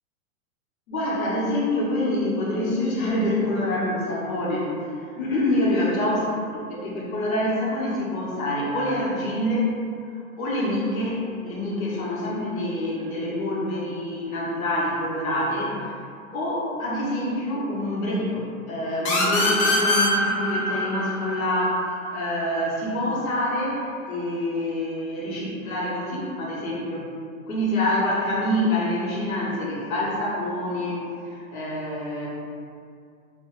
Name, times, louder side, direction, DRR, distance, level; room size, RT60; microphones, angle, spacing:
voice 1, 0.9-4.7 5.1-9.7 10.4-15.9 16.3-21.8 22.1-27.1 27.5-31.0 31.3-32.3, left 1 dB, 75° left, -5 dB, 1.1 m, -26 dB
sound 1, 19.1-22.5, left 2 dB, 25° left, 0.3 m, -24 dB
2.9 x 2.1 x 3.0 m, 2.4 s
hypercardioid pair, 135°, 41 cm